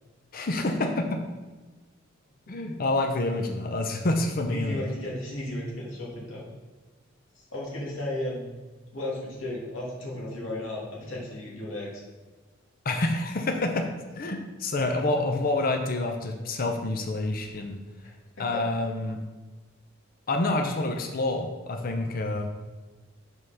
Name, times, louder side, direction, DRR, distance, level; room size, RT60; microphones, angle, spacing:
voice 1, 0.3-1.2 2.5-4.8 12.8-13.9 14.1-17.8 18.4-19.2 20.3-22.5, left 2 dB, 50° left, 4 dB, 0.6 m, -27 dB
voice 2, 4.5-6.5 7.4-8.5 8.9-12.0 18.0-18.1, left 1 dB, 85° left, -4 dB, 2.2 m, -34 dB
5.4 x 4.7 x 5.7 m, 1.3 s
head